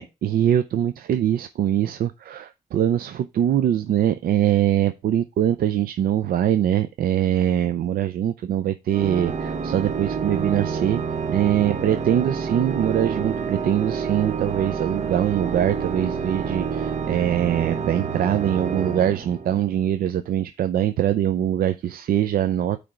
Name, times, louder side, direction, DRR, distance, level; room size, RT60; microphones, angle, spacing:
voice 1, 0.0-11.0 11.3-22.8, right 10 dB, 75° right, 0.5 m, -23 dB
Organ, 8.9-19.8, right 6 dB, 50° right, 0.8 m, -28 dB
8.6 x 3.4 x 4.9 m
cardioid pair, 60°, 15 cm